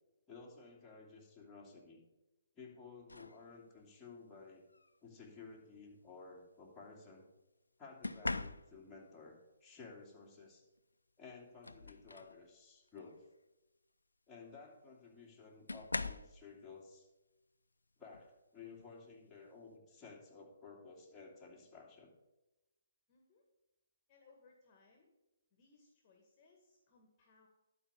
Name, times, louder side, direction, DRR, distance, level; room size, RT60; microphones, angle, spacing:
voice 1, 0.3-2.0 2.6-4.6 5.0-7.3 7.8-10.6 11.2-13.2 14.3-17.1 18.0-22.1, left 4 dB, 10° left, -4 dB, 2.5 m, -55 dB
sound 1, 3.1-3.4 4.7-5.0 8.0-9.0 10.8-10.9 11.3-12.4 12.9-13.2 14.5-14.6 15.7-16.4 18.1-18.3 18.8-19.1, left 3 dB, 90° left, 0.5 m, -42 dB
voice 2, 23.1-23.4 24.1-25.1 25.5-27.5, left 4 dB, 30° left, 1 dB, 1.9 m, -67 dB
11.5 x 4.9 x 6.8 m, 1.0 s
figure-of-eight pair, 140°, 0 cm